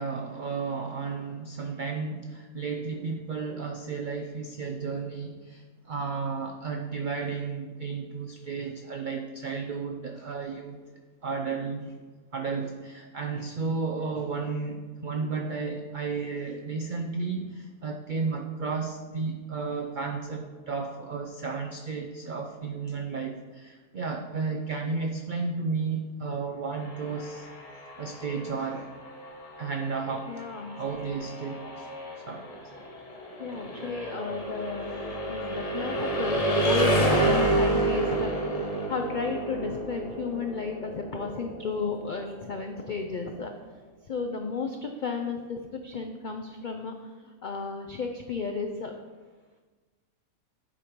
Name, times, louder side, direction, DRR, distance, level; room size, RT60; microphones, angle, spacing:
voice 1, 0.0-10.8 11.2-11.9 12.3-27.5 28.0-28.9 29.6-30.2 30.8-31.9 32.3-32.5 34.9-35.0, right 4 dB, 75° right, 4 dB, 0.4 m, -33 dB
sound 1, 26.8-42.6, right 1 dB, 30° left, 1.0 m, -30 dB
voice 2, 30.3-30.8 33.4-35.0 35.3-38.3 38.9-43.5 44.1-46.9 47.4-48.9, left 4 dB, 80° left, 4 dB, 0.4 m, -33 dB
7.5 x 5.1 x 4.6 m, 1.3 s
omnidirectional pair, 1.5 m